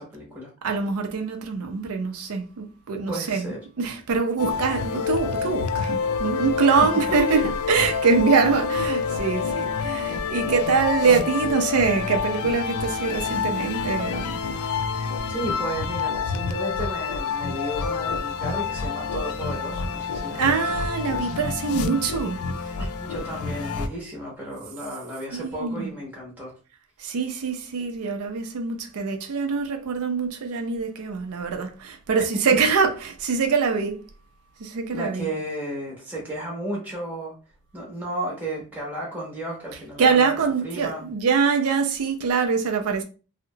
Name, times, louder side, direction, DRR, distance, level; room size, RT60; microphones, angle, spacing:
voice 1, 0.0-0.5 3.1-3.6 6.7-7.5 15.3-20.5 22.8-26.5 32.3-32.4 34.9-37.3 37.7-41.1, right 1 dB, 10° right, 0.7 m, -33 dB
voice 2, 0.6-3.5 3.8-14.4 20.3-22.7 25.3-25.9 27.0-34.0 34.6-35.3 40.0-43.0, right 5 dB, 85° right, 0.4 m, -24 dB
sound 1, 4.4-23.9, left 6 dB, 80° left, 0.3 m, -28 dB
2.7 x 2.0 x 2.7 m
head